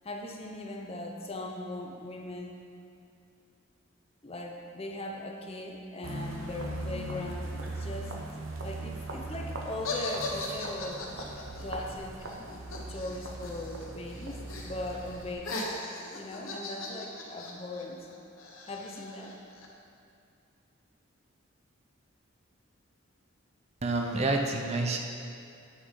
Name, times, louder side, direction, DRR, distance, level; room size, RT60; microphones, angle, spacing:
voice 1, 0.0-2.6 4.2-8.1 8.6-11.1 11.6-12.3 12.9-15.7 16.1-18.1 18.6-19.4, left 1 dB, 30° left, 1 dB, 0.6 m, -39 dB
sound 1, 6.0-15.3, right 1 dB, 75° right, 0.9 m, -39 dB
sound 2, 9.8-13.9 14.1-14.7 15.0-19.7, left 3 dB, 80° left, 1.1 m, -39 dB
voice 2, 23.8-25.0, right 2 dB, 30° right, 2 dB, 0.5 m, -28 dB
8.0 x 6.4 x 3.7 m, 2.5 s
head